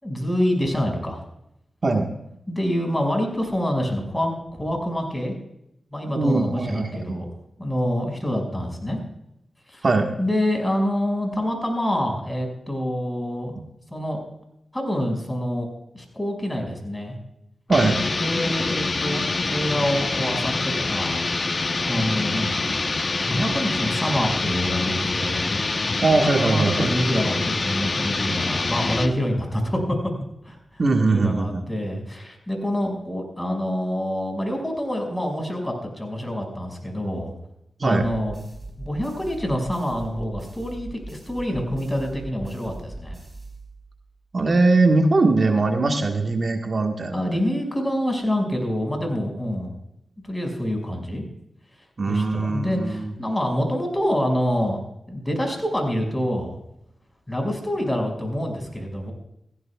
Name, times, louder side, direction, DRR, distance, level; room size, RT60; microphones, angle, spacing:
voice 1, 0.0-1.2 2.5-5.3 5.9-7.3 7.6-9.0 9.7-9.9 10.2-13.7 13.9-14.2 14.7-15.7 15.9-17.1 18.0-21.3 21.9-25.5 26.4-30.0 30.4-30.6 31.1-37.3 37.8-38.4 38.8-43.2 47.1-49.7 50.3-51.2 52.0-54.8 55.1-56.5 57.3-59.1, equal, 15° left, 3 dB, 5.8 m, -26 dB
voice 2, 6.0-7.2 9.8-10.2 17.7-18.0 26.0-27.0 30.8-31.6 37.8-38.1 44.3-47.3 52.0-53.1, right 3 dB, 55° right, 3 dB, 1.5 m, -21 dB
sound 1, 17.7-29.2, left 3 dB, 50° left, 0.9 m, -25 dB
sound 2, 38.0-44.1, right 2 dB, 15° right, 4.8 m, -40 dB
17.0 x 15.5 x 2.4 m, 0.79 s
cardioid pair, 50°, 0 cm